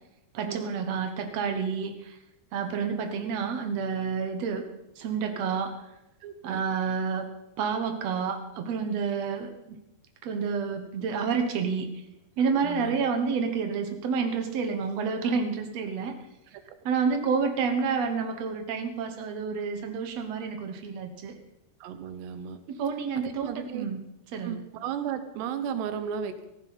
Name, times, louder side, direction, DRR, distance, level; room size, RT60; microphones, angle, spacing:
voice 1, 0.3-2.2 2.5-4.7 5.0-5.7 6.4-9.8 10.2-12.0 12.4-16.2 16.8-21.4 22.7-24.0 24.3-24.6, right 5 dB, 70° right, 6 dB, 1.5 m, -29 dB
voice 2, 6.2-6.6 12.6-12.9 21.8-22.6 23.2-23.9 24.4-26.4, right 8 dB, 85° right, 10 dB, 3.2 m, -34 dB
17.0 x 14.5 x 4.2 m, 0.91 s
omnidirectional pair, 4.7 m